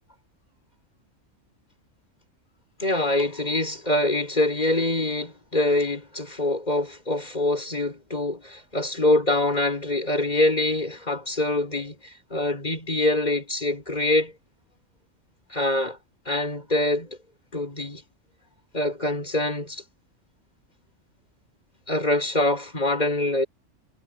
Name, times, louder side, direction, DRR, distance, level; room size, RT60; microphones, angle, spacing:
voice 1, 2.8-14.3 15.5-16.0 16.3-17.2 17.5-18.0 18.7-19.8 21.9-23.5, left 1 dB, 35° left, 5.8 m, -24 dB
omnidirectional pair, 1.3 m